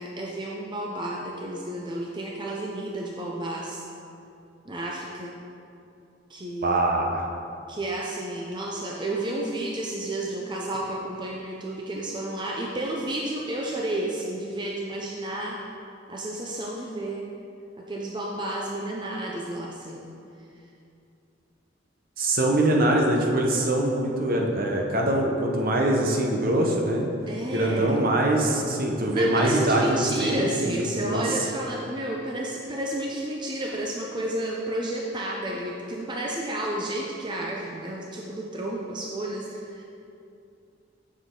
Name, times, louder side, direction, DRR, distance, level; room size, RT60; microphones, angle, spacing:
voice 1, 0.0-3.8 4.6-5.3 6.3-6.8 7.7-15.6 16.1-17.3 17.8-20.1 27.3-27.9 29.1-39.8, right 1 dB, 25° right, -2 dB, 0.6 m, -31 dB
voice 2, 6.6-7.2 22.2-27.0 27.5-30.7 31.0-31.2, right 1 dB, 55° right, 0 dB, 0.9 m, -23 dB
7.5 x 6.3 x 3.8 m, 2.6 s
head